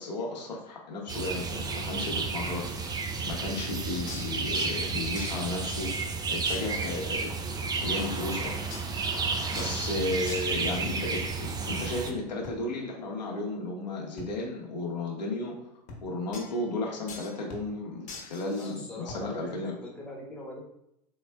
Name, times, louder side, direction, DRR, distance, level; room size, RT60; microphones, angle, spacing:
voice 1, 0.0-3.0 3.2-7.3 7.6-8.8 9.2-9.3 9.5-15.6 16.0-19.7, left 2 dB, 90° left, -2 dB, 0.9 m, -34 dB
sound 1, 1.1-12.1, right 4 dB, 20° right, 0.4 m, -32 dB
sound 2, 4.1-4.9 5.1-6.1 6.5-7.0 8.7-9.0 9.5-9.8 10.3-11.7 16.3-16.8 17.1-17.4 18.1-18.8, left 4 dB, 35° left, 1.0 m, -45 dB
sound 3, 9.3-9.6 10.8-11.1 12.4-12.7 14.2-14.4 15.9-16.1 17.5-17.8 19.1-19.3, left 2 dB, 65° left, 1.2 m, -44 dB
voice 2, 18.6-20.6, left 1 dB, 5° left, -3 dB, 1.1 m, -41 dB
3.9 x 3.2 x 2.2 m, 0.80 s
hypercardioid pair, 95°, 21 cm